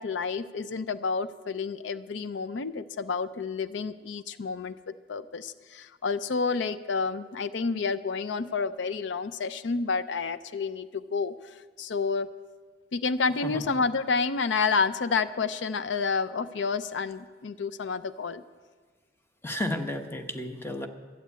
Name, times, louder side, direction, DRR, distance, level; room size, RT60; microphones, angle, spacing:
voice 1, 0.0-12.3 12.9-18.4, left 4 dB, 80° left, 14 dB, 0.5 m, -29 dB
voice 2, 13.4-13.7 19.4-20.9, left 1 dB, 15° left, 5 dB, 0.9 m, -32 dB
12.5 x 8.5 x 8.3 m, 1.5 s
head